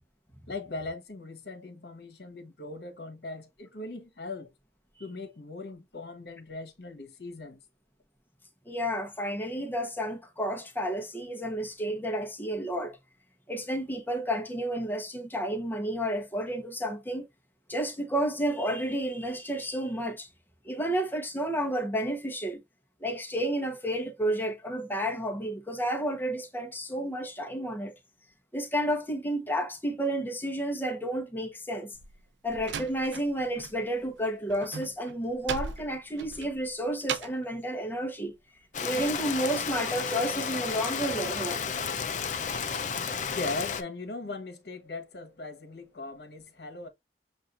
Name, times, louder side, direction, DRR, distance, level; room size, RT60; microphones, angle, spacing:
voice 1, 0.5-4.5 5.0-7.6 43.3-46.9, left 3 dB, 65° left, 1.2 m, -39 dB
voice 2, 8.7-13.0 13.5-17.2 17.7-20.3 20.6-22.6 23.0-27.9 28.5-32.0 32.4-38.3 38.8-41.6, right 1 dB, 10° left, 1.0 m, -31 dB
Slam, 31.9-33.8 34.0-37.5, right 6 dB, 85° right, 0.5 m, -38 dB
Rain, 38.7-43.8, left 6 dB, 45° left, 0.5 m, -32 dB
7.3 x 2.6 x 2.5 m
head